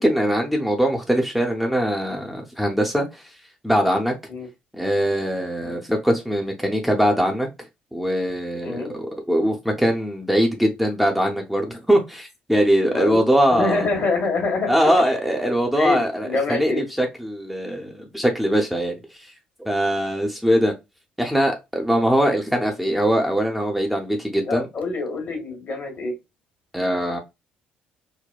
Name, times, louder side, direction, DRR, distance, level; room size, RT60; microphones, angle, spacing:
voice 1, 0.0-3.2 3.6-4.1 4.8-7.5 7.9-13.9 14.7-19.3 19.6-20.7 21.2-24.7 26.7-27.2, equal, ahead, 0.7 m, -22 dB
voice 2, 8.6-9.1 12.9-13.2 13.5-14.7 15.8-16.8 24.4-26.1, left 3 dB, 50° left, 1.5 m, -26 dB
4.1 x 2.1 x 2.2 m
hypercardioid pair, 55°, 4 cm